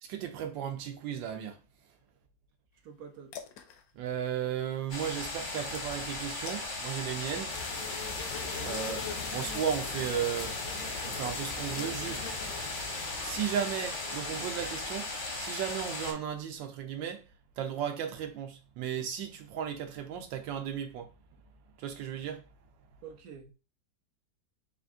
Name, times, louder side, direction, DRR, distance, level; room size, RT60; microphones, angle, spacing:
voice 1, 0.0-1.6 3.9-7.5 8.6-9.0 9.3-10.6 11.0-12.4 13.2-17.2 17.6-21.1 21.8-22.4, right 9 dB, 85° right, 1.4 m, -35 dB
sound 1, 2.8-7.8, left 8 dB, 70° left, 0.9 m, -51 dB
voice 2, 2.8-3.3 8.4-8.8 23.0-23.5, right 7 dB, 70° right, 0.9 m, -47 dB
sound 2, 4.9-16.1, left 2 dB, 45° left, 0.6 m, -37 dB
sound 3, 7.5-15.0, left 6 dB, 85° left, 1.4 m, -41 dB
4.4 x 2.5 x 3.5 m
omnidirectional pair, 2.0 m